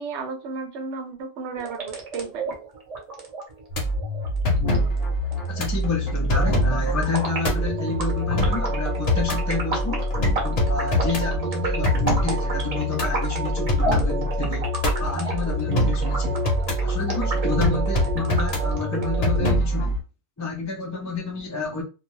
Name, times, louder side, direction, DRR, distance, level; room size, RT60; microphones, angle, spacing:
voice 1, 0.0-2.5, right 4 dB, 85° right, 0.9 m, -33 dB
sound 1, 1.6-19.6, right 4 dB, 40° right, 0.7 m, -32 dB
sound 2, 3.7-20.0, left 1 dB, 65° left, 1.1 m, -24 dB
voice 2, 5.5-10.0 10.3-14.7 15.0-16.5 16.8-20.0 20.4-21.8, left 4 dB, 25° left, 0.3 m, -30 dB
2.6 x 2.2 x 3.0 m
omnidirectional pair, 1.1 m